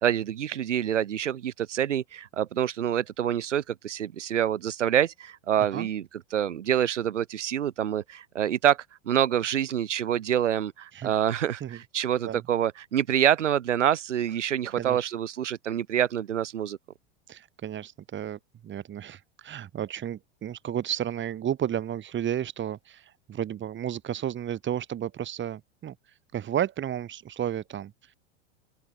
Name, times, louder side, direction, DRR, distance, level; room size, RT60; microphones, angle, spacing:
voice 1, 0.0-6.0 6.3-8.8 9.1-16.8, right 10 dB, 85° right, 2.8 m, -26 dB
voice 2, 17.3-28.1, right 10 dB, 30° right, 7.7 m, -33 dB
open air
hypercardioid pair, 105°, 35 cm